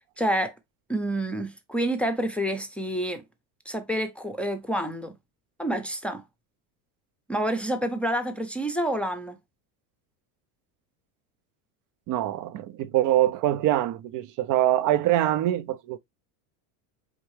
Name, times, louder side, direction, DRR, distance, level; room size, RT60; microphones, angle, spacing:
voice 1, 0.2-0.5 0.9-3.2 3.7-5.2 5.6-6.2 7.3-9.4, right 1 dB, 5° left, 0.6 m, -28 dB
voice 2, 12.1-16.0, right 13 dB, 45° right, 0.5 m, -24 dB
4.4 x 3.6 x 3.1 m
supercardioid pair, 110°, 44 cm